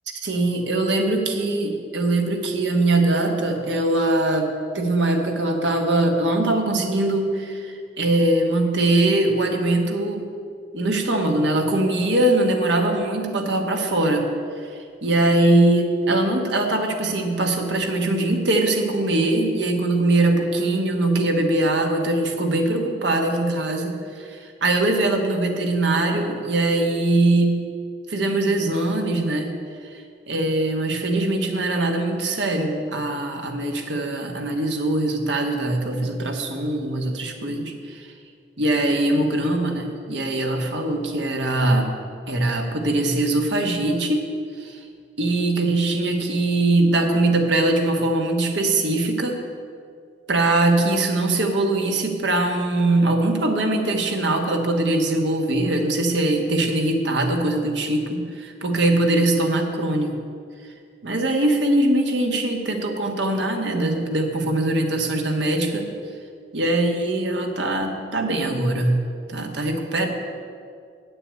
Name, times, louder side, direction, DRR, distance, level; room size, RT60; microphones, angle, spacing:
voice 1, 0.2-10.3 10.7-14.3 14.6-27.6 28.1-29.5 30.3-38.1 38.6-41.9 42.3-44.3 44.6-44.8 45.2-49.4 50.3-60.2 61.0-65.9 66.5-69.0 69.3-70.1, right 2 dB, 80° right, 3 dB, 1.3 m, -22 dB
8.5 x 6.9 x 8.5 m, 2.2 s
head